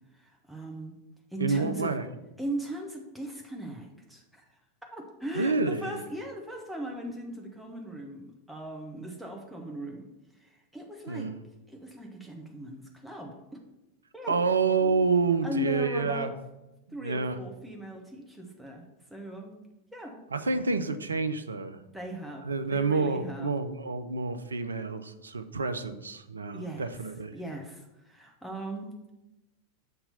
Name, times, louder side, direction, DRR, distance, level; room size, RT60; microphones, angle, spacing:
voice 1, 0.1-0.9 1.3-1.9 2.4-4.4 4.9-10.1 10.4-11.3 11.7-13.4 14.1-14.3 15.4-16.3 16.9-19.6 19.9-20.2 21.9-23.5 26.5-26.9 27.3-29.1, right 1 dB, ahead, 0 dB, 0.8 m, -39 dB
voice 2, 1.4-2.1 5.4-6.0 11.1-11.4 14.3-16.3 17.0-17.4 20.3-21.8 22.4-27.4, right 4 dB, 75° right, 10 dB, 0.4 m, -28 dB
6.6 x 2.9 x 5.5 m, 0.95 s
figure-of-eight pair, 90°, 0 cm